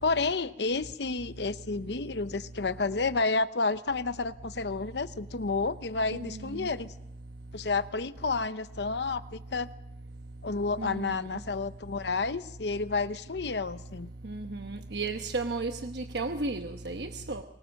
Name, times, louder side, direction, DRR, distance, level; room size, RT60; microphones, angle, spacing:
voice 1, 0.0-6.9 7.5-9.7 10.4-14.1, left 3 dB, 70° left, 13 dB, 0.8 m, -30 dB
voice 2, 14.2-17.4, right 3 dB, 70° right, 6 dB, 1.1 m, -34 dB
24.0 x 21.0 x 6.5 m, 0.89 s
head